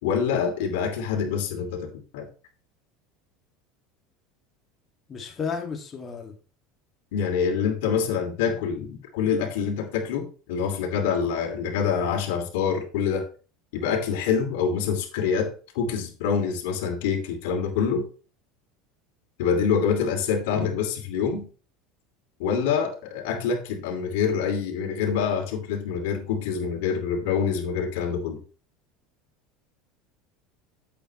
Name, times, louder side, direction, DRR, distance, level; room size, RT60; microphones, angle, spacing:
voice 1, 0.0-2.3 7.1-13.2 13.7-18.1 19.4-21.5 22.4-28.4, left 6 dB, 80° left, 3 dB, 2.9 m, -26 dB
voice 2, 5.1-6.3, left 6 dB, 30° left, 2 dB, 2.5 m, -32 dB
8.7 x 7.7 x 3.3 m, 0.37 s
supercardioid pair, 110°, 0 cm